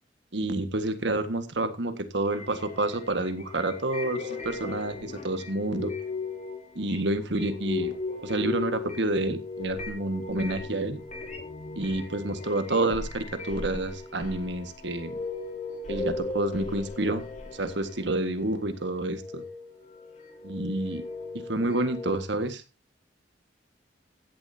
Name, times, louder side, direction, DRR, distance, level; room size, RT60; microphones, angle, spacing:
voice 1, 0.3-5.9 6.8-7.9 8.2-11.0 11.8-15.2 15.9-17.2 17.5-19.4 20.4-21.0 21.5-22.6, right 2 dB, 70° right, 1.7 m, -29 dB
sound 1, 2.3-18.5 19.0-22.2, left 3 dB, 40° left, 4.1 m, -37 dB
16.0 x 11.0 x 2.8 m
head